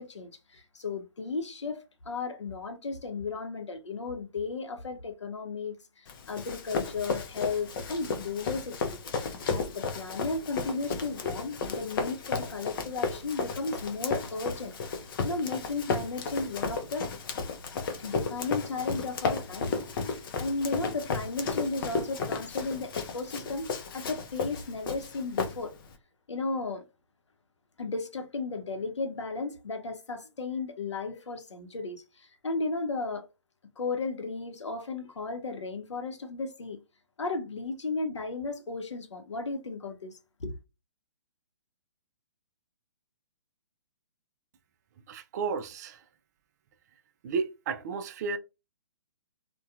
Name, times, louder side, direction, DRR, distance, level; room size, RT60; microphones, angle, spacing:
voice 1, 0.0-5.8 6.3-9.0 9.5-14.7 15.2-17.1 18.0-19.7 20.1-25.7 26.3-26.8 27.8-33.3 33.8-36.8 37.2-40.1 40.4-40.5, left 3 dB, 85° left, 0.7 m, -34 dB
Run, 6.1-25.9, left 4 dB, 50° left, 0.6 m, -34 dB
voice 2, 45.1-46.0 47.2-48.4, right 5 dB, 40° right, 0.4 m, -32 dB
2.7 x 2.2 x 2.4 m
hypercardioid pair, 135°, 15 cm